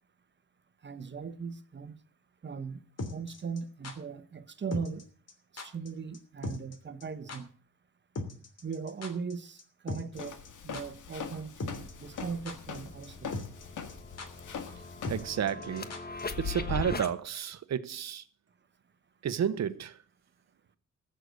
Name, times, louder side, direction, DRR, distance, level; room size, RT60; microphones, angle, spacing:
voice 1, 0.8-1.9 2.4-2.8 3.1-5.0 5.5-7.5 8.6-10.4 10.6-13.3, right 5 dB, 35° right, 1.1 m, -39 dB
sound 1, 3.0-3.9 4.7-5.0 5.3-5.4 5.6-5.9 6.1-6.2 6.4-6.7 7.0-7.1 7.3-7.4 8.1-9.3 9.6-9.7 9.9-10.5 10.7-10.8 11.6-11.9 12.2-12.8 13.0-13.1 13.3-13.6 13.9-14.0 14.2-14.3 15.0-16.2 16.5-16.6, left 2 dB, 55° left, 3.0 m, -38 dB
Walk footsteps, 10.1-15.4, left 6 dB, 75° left, 1.9 m, -43 dB
sound 2, 12.1-17.1, left 4 dB, 30° left, 1.2 m, -40 dB
voice 2, 15.1-15.9 16.4-18.2 19.2-20.0, right 8 dB, 60° right, 1.0 m, -31 dB
14.5 x 6.8 x 8.2 m
cardioid pair, 105°, 31 cm